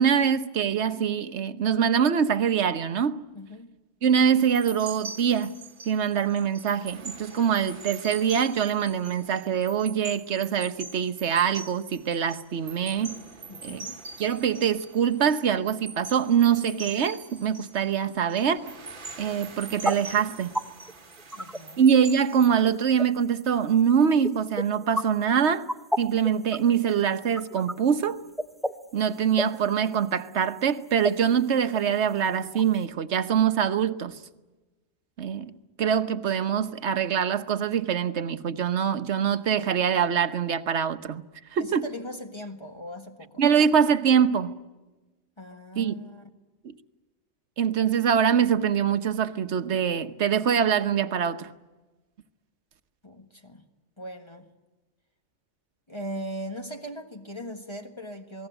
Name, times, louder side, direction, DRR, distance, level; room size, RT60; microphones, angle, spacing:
voice 1, 0.0-3.2 4.0-5.6 5.8-13.2 13.6-13.8 14.2-18.7 19.2-20.5 21.8-25.7 26.0-28.2 28.9-34.2 35.2-41.2 41.5-41.9 43.4-44.6 45.8-45.9 46.6-46.7 47.6-51.5, right 7 dB, 60° right, 1.2 m, -24 dB
voice 2, 3.3-3.8 13.5-14.0 21.3-21.9 41.6-43.4 45.4-46.3 53.0-53.6 54.0-54.5 55.9-58.5, equal, 20° left, 1.6 m, -39 dB
sound 1, 4.4-22.5, right 4 dB, 40° right, 1.5 m, -43 dB
sound 2, 19.3-32.8, equal, ahead, 0.3 m, -33 dB
28.0 x 19.5 x 8.1 m
omnidirectional pair, 1.4 m